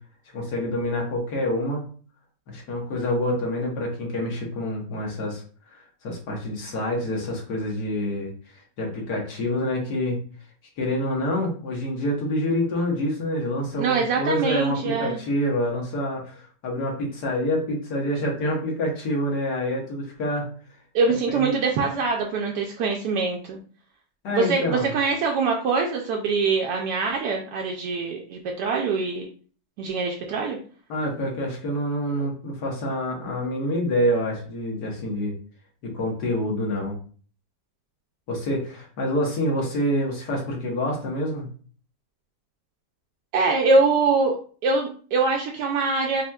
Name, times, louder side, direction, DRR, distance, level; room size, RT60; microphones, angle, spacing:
voice 1, 0.3-1.9 2.5-5.4 5.7-8.3 8.8-10.2 10.8-20.5 21.3-21.5 24.2-24.9 30.9-35.3 35.8-37.0 38.3-41.5, left 1 dB, 65° left, -1 dB, 1.7 m, -27 dB
voice 2, 13.8-15.2 20.9-23.6 24.3-29.3 29.8-30.6 43.3-44.4 44.6-46.2, right 4 dB, 75° right, 1 dB, 1.1 m, -23 dB
4.9 x 2.8 x 2.3 m, 0.42 s
omnidirectional pair, 1.9 m